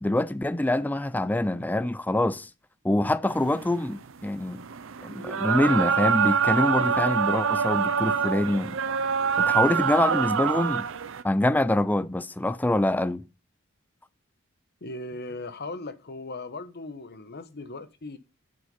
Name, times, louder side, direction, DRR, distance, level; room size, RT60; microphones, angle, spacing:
voice 1, 0.0-2.5 2.8-4.6 5.0-8.8 9.4-10.9 11.2-13.3, left 1 dB, 10° left, 0.4 m, -25 dB
sound 1, 3.3-11.2, right 6 dB, 65° right, 0.7 m, -25 dB
voice 2, 14.8-18.2, left 2 dB, 50° left, 1.1 m, -38 dB
7.9 x 7.9 x 5.4 m
head